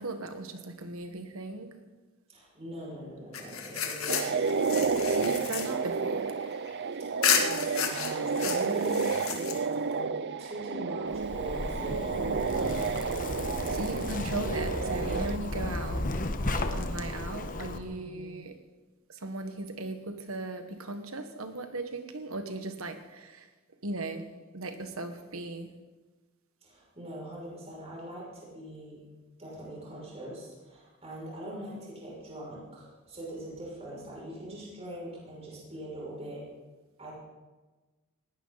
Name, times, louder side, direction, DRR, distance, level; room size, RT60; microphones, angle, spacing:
voice 1, 0.0-1.8 5.1-6.3 8.4-9.5 13.7-16.1 16.4-18.6 19.1-23.5 23.8-24.3 24.5-25.7, right 2 dB, 85° right, 8 dB, 1.6 m, -38 dB
voice 2, 2.3-5.3 5.7-5.8 7.0-10.1 10.4-12.9 17.9-18.3 26.6-29.0 29.4-36.4 37.0-37.1, right 1 dB, 30° right, -6 dB, 6.5 m, -42 dB
sound 1, 3.3-6.7 7.2-9.9, left 7 dB, 75° left, 2.0 m, -32 dB
sound 2, 4.1-15.4, right 5 dB, 55° right, 0.6 m, -31 dB
Zipper (clothing), 11.1-17.8, left 2 dB, 40° left, 1.2 m, -34 dB
19.5 x 16.5 x 4.1 m, 1.2 s
head